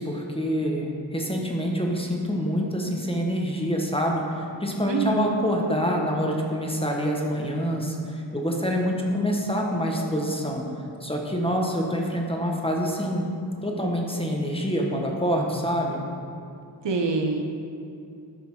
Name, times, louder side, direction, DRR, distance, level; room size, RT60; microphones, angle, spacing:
voice 1, 0.0-8.0 8.3-10.7 11.0-13.3 13.6-16.0, equal, 15° left, 0 dB, 1.5 m, -26 dB
voice 2, 4.9-5.4 16.8-17.4, right 4 dB, 80° right, 3 dB, 1.1 m, -25 dB
13.0 x 5.8 x 5.6 m, 2.5 s
wide cardioid pair, 95°, 43 cm